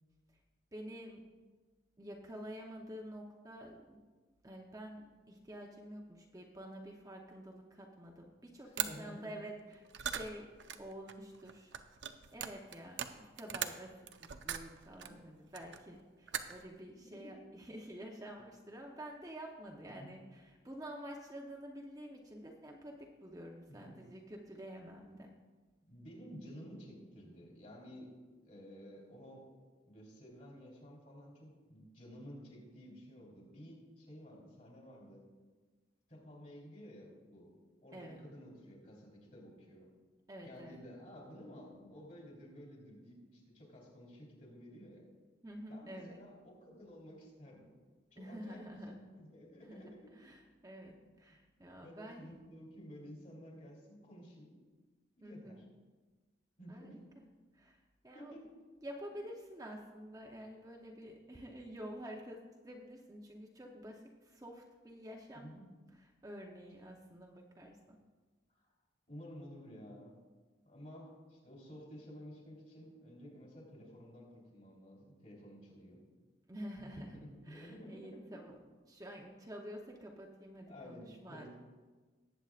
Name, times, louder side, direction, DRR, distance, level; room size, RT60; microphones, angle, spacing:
voice 1, 0.7-1.2 2.0-4.0 4.4-10.5 10.8-11.7 12.3-25.3 37.9-38.2 40.3-40.8 45.4-46.2 48.2-49.0 49.6-52.3 55.2-55.6 56.7-56.9 57.5-57.8 58.0-58.3 58.8-65.5 66.2-68.0 76.5-77.1 77.5-78.5 78.9-81.5, equal, 20° right, 0 dB, 0.8 m, -49 dB
voice 2, 8.6-9.4 10.7-10.8 15.0-15.2 17.0-17.4 19.9-20.1 23.7-23.9 25.9-28.1 28.4-29.5 29.9-35.3 36.1-37.5 37.8-39.9 40.4-45.1 45.7-47.7 48.1-50.1 51.0-51.4 51.7-54.5 55.2-55.6 56.6-57.0 58.1-58.4 65.3-65.7 69.1-70.2 70.6-76.0 76.8-78.4 80.7-81.5, equal, 45° left, -2 dB, 3.1 m, -53 dB
sound 1, 8.8-8.9 9.8-15.1 15.5-16.0 16.3-16.7, right 9 dB, 80° right, 0.6 m, -40 dB
19.0 x 8.0 x 2.5 m, 1.4 s
head